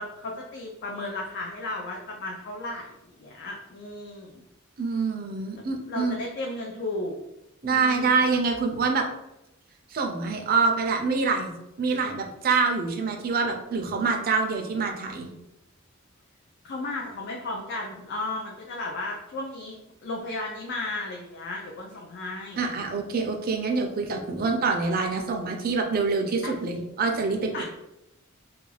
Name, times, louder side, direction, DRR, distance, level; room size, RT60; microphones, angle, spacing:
voice 1, 0.0-2.9 3.2-4.4 5.5-5.6 5.9-7.2 7.6-8.2 16.6-19.8 20.0-22.6 26.4-26.8 27.5-27.6, left 2 dB, 50° left, -1 dB, 0.4 m, -34 dB
voice 2, 4.8-6.2 7.6-9.0 9.9-11.5 11.8-15.3 22.6-27.5, right 4 dB, 45° right, 3 dB, 0.4 m, -25 dB
2.3 x 2.3 x 3.1 m, 0.89 s
head